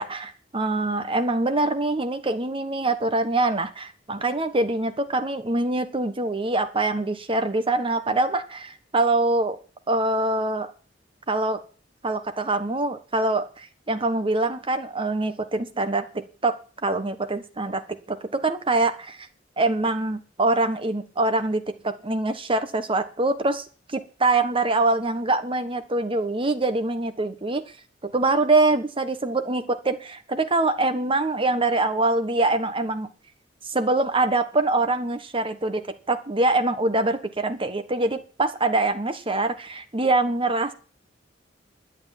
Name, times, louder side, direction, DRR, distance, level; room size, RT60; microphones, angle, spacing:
voice 1, 0.0-9.6 9.9-10.7 11.3-11.6 12.0-16.5 16.8-17.8 18.1-19.3 19.6-27.6 28.0-33.1 33.6-40.7, right 2 dB, 30° right, 9 dB, 1.3 m, -24 dB
11.5 x 8.1 x 9.4 m, 0.39 s
head